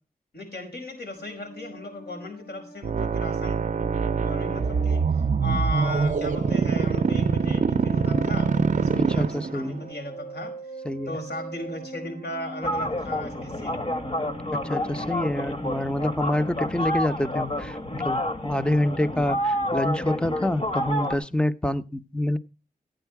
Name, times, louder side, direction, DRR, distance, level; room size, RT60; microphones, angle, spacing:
voice 1, 0.3-3.7 4.2-10.5 11.1-13.7, left 1 dB, 90° left, 3 dB, 5.5 m, -36 dB
sound 1, 1.2-16.6, equal, 60° left, 7.7 m, -42 dB
sound 2, 2.8-9.8, right 5 dB, 55° right, 0.6 m, -24 dB
voice 2, 8.9-9.8 10.8-11.2 14.5-22.4, left 1 dB, 5° left, 13 dB, 0.6 m, -27 dB
sound 3, 12.6-21.1, left 1 dB, 40° left, 1.4 m, -29 dB
15.5 x 9.1 x 4.6 m, 0.33 s
wide cardioid pair, 115°, 16 cm